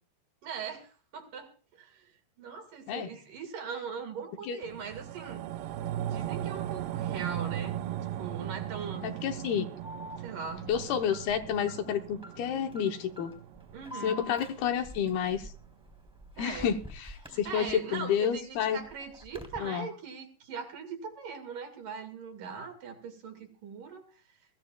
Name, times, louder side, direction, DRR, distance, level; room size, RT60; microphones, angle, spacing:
voice 1, 0.4-1.5 1.8-2.1 2.4-5.4 6.0-7.8 8.2-9.1 10.2-10.7 13.7-14.2 16.4-16.7 17.2-24.1, right 6 dB, 55° right, 6 dB, 3.2 m, -40 dB
sound 1, 4.6-15.2 15.6-15.7, right 11 dB, 80° right, 2.9 m, -38 dB
voice 2, 9.0-9.7 10.7-13.3 14.0-15.5 16.4-18.8 19.6-19.9, left 8 dB, 75° left, 5 dB, 2.6 m, -30 dB
Alarm, 9.8-18.0 18.4-19.6, equal, ahead, 2.2 m, -47 dB
22.0 x 15.5 x 2.3 m, 0.34 s
omnidirectional pair, 5.0 m